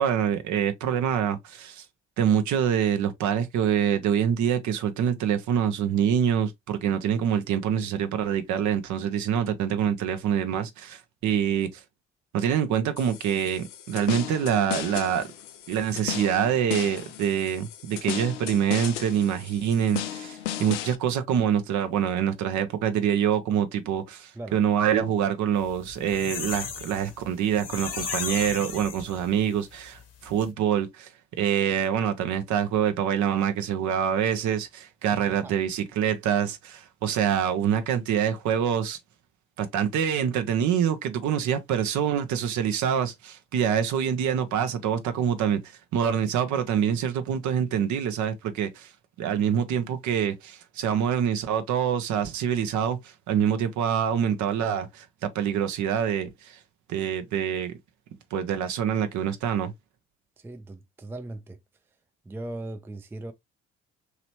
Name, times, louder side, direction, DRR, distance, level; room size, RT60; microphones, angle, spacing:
voice 1, 0.0-1.8 2.2-11.7 12.3-15.3 15.7-31.1 31.4-39.0 39.6-45.6 45.9-48.9 49.2-53.0 53.3-56.6 56.9-57.7 58.3-59.7, right 8 dB, 55° right, 0.8 m, -25 dB
sound 1, 13.0-21.0, left 11 dB, 85° left, 0.5 m, -35 dB
sound 2, 25.7-29.5 29.9-30.0 30.3-30.4, left 6 dB, 45° left, 1.0 m, -35 dB
voice 2, 35.1-35.5 60.4-61.6 62.3-63.3, right 2 dB, 5° right, 0.4 m, -38 dB
3.0 x 2.9 x 2.9 m
figure-of-eight pair, 50°, 35 cm